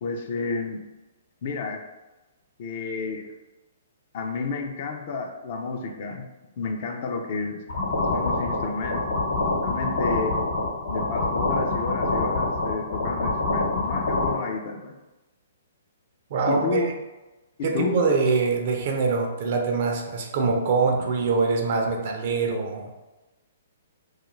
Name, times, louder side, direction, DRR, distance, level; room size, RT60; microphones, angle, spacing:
voice 1, 0.0-0.8 1.4-1.8 2.6-3.3 4.1-6.3 6.6-7.6 8.1-9.2 9.6-10.4 10.9-15.0 16.5-16.9 17.6-18.0, left 4 dB, 50° left, 3 dB, 0.4 m, -30 dB
sound 1, 7.7-14.3, left 2 dB, 70° left, 0.9 m, -26 dB
voice 2, 16.3-16.8 17.6-23.0, right 4 dB, 50° right, 2 dB, 0.5 m, -24 dB
2.3 x 2.3 x 3.0 m, 1.1 s
hypercardioid pair, 125°, 0 cm